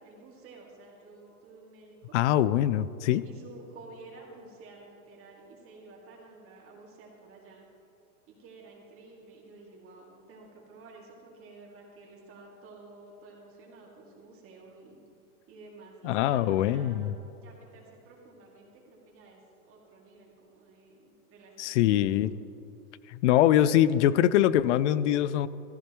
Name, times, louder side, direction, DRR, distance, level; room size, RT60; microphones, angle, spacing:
voice 1, 0.0-2.2 3.2-7.7 8.3-15.0 15.5-17.1 17.4-22.3, right 3 dB, 30° right, -2 dB, 2.3 m, -51 dB
voice 2, 2.1-3.2 16.0-17.2 21.6-22.3 23.1-25.5, left 12 dB, 55° left, 17 dB, 0.5 m, -23 dB
14.5 x 14.0 x 3.0 m, 2.9 s
hypercardioid pair, 130°, 45 cm